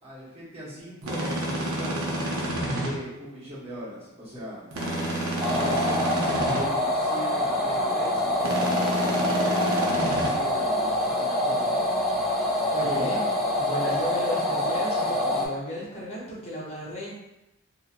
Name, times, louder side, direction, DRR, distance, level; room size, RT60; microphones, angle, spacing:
voice 1, 0.0-4.7 5.4-11.8 12.8-13.3, equal, 25° right, -9 dB, 1.0 m, -40 dB
sound 1, 1.0-2.9 4.7-6.6 8.4-10.3, right 1 dB, 70° right, 0.7 m, -29 dB
sound 2, 5.4-15.5, left 1 dB, ahead, 0.4 m, -25 dB
voice 2, 12.7-13.3 13.6-17.1, left 1 dB, 30° left, -8 dB, 0.7 m, -34 dB
2.8 x 2.6 x 2.5 m, 0.94 s
head